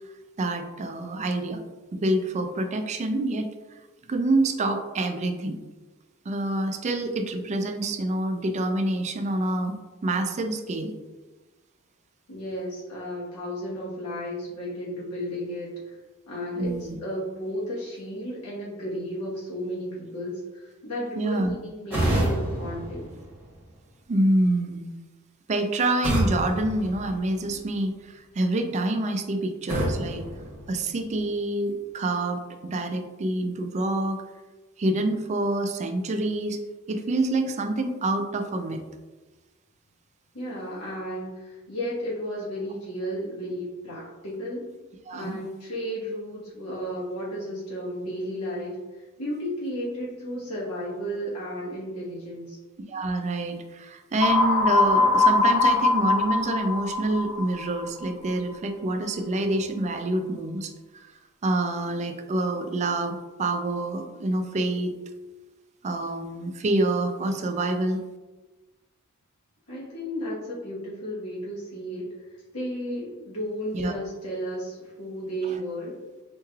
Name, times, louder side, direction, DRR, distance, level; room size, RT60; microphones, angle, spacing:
voice 1, 0.4-1.6 1.9-3.5 4.1-5.6 6.3-9.8 10.0-10.9 16.6-17.0 21.2-21.5 24.1-24.9 25.5-30.3 30.7-34.2 34.8-36.6 36.9-38.8 45.1-45.4 52.9-61.1 61.4-64.9 65.8-68.0 73.7-73.9, right 2 dB, 30° right, 6 dB, 0.3 m, -27 dB
voice 2, 12.3-16.0 16.3-23.2 40.3-44.6 45.1-52.6 69.7-72.1 72.5-75.9, equal, 90° left, -7 dB, 1.2 m, -33 dB
sound 1, 21.9-23.9 26.0-27.7 29.7-31.3, right 1 dB, 10° right, 0.9 m, -29 dB
sound 2, 54.2-58.1, left 3 dB, 30° left, 1.1 m, -22 dB
4.4 x 3.1 x 2.3 m, 1.2 s
head